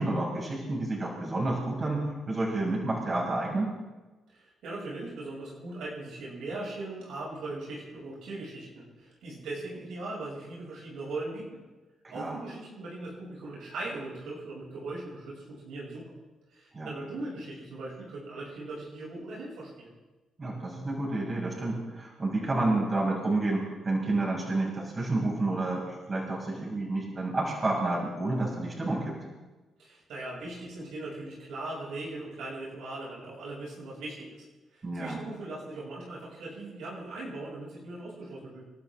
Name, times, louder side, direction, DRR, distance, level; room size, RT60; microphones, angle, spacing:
voice 1, 0.0-3.8 12.0-12.4 16.7-16.9 20.4-29.2 34.8-35.2, right 2 dB, 35° right, -3 dB, 6.9 m, -30 dB
voice 2, 4.3-11.6 12.1-16.1 16.5-19.9 29.8-34.4 34.7-38.6, right 2 dB, 80° right, -5 dB, 7.1 m, -39 dB
29.5 x 12.0 x 3.8 m, 1.2 s
supercardioid pair, 70°, 0 cm